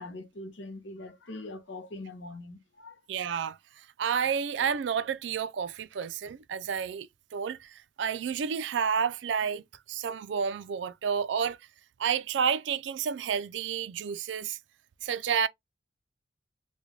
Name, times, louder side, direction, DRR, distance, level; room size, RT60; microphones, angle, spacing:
voice 1, 0.0-3.0, left 2 dB, 80° left, 0.8 m, -42 dB
voice 2, 3.1-3.6 4.0-7.1 7.3-11.6 12.0-14.6 15.0-15.5, right 7 dB, 80° right, 0.4 m, -30 dB
3.2 x 2.2 x 3.6 m
head